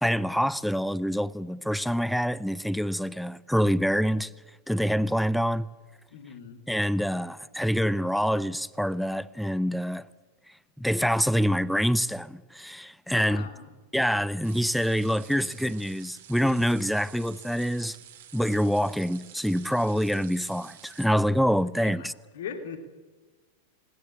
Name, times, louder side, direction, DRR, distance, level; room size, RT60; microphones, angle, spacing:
voice 1, 0.0-4.3 4.7-5.7 6.7-10.1 10.8-13.5 13.9-18.0 18.3-22.1, equal, ahead, 0.7 m, -26 dB
voice 2, 6.1-6.6 13.1-13.7 21.8-22.1 22.3-22.8, left 7 dB, 60° left, 2.9 m, -40 dB
sound 1, 14.4-21.1, right 11 dB, 55° right, 2.7 m, -50 dB
20.5 x 20.0 x 8.9 m
figure-of-eight pair, 90°, 0 cm